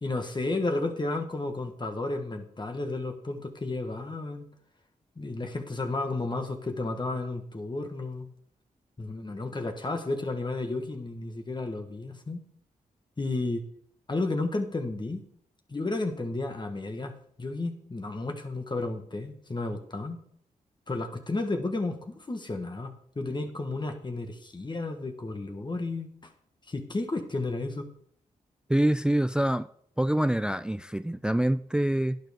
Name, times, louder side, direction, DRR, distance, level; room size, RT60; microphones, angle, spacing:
voice 1, 0.0-4.5 5.2-8.3 9.0-12.4 13.2-13.6 14.1-15.2 15.7-20.2 20.9-26.1 26.7-27.9, left 2 dB, 30° left, 1.5 m, -32 dB
voice 2, 28.7-29.7 30.0-32.2, right 1 dB, 5° right, 0.3 m, -25 dB
11.5 x 9.2 x 3.6 m
cardioid pair, 50°, 15 cm